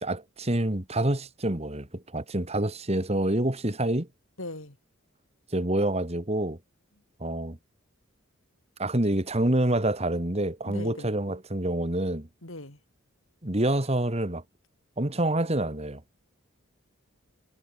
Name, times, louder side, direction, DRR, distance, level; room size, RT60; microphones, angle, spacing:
voice 1, 0.0-4.1 5.5-6.6 7.2-7.6 8.8-12.3 13.4-14.4 15.0-16.0, right 1 dB, 30° right, 2.1 m, -27 dB
voice 2, 4.4-4.8 10.6-11.1 12.4-12.8, left 1 dB, 65° left, 5.2 m, -39 dB
head